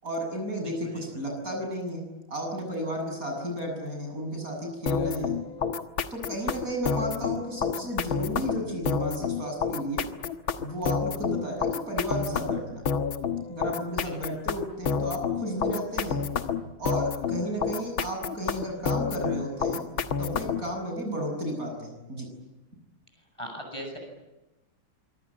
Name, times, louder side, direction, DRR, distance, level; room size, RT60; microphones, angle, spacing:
voice 1, 0.0-5.4 6.1-10.0 10.6-12.8 13.5-16.2 16.8-19.9 20.2-22.3, equal, 45° right, 2 dB, 7.9 m, -33 dB
voice 2, 0.6-1.0 14.0-14.2 23.4-24.0, equal, 15° left, 3 dB, 7.7 m, -39 dB
sound 1, 4.9-20.7, left 6 dB, 85° left, 2.2 m, -29 dB
26.0 x 24.5 x 8.9 m, 1.0 s
omnidirectional pair, 2.1 m